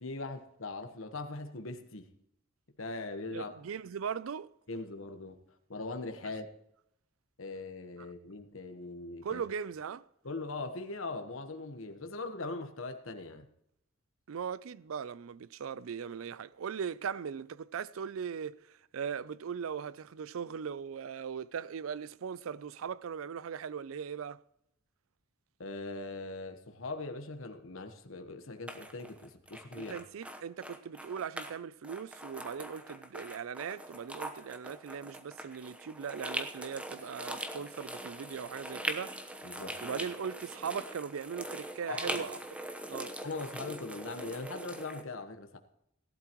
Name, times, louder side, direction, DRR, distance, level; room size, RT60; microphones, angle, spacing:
voice 1, 0.0-2.1 2.8-3.6 4.7-5.4 5.7-6.5 7.4-9.4 10.2-13.5 25.6-30.0 39.4-39.8 41.9-42.3 43.2-45.6, left 3 dB, 75° left, 1.3 m, -40 dB
voice 2, 3.3-4.5 9.2-10.0 14.3-24.4 29.8-39.2 39.8-42.4 42.9-43.2, right 7 dB, 90° right, 0.4 m, -39 dB
sound 1, 28.7-31.6 31.8-45.0, right 1 dB, 5° right, 1.0 m, -42 dB
17.5 x 12.0 x 3.1 m
head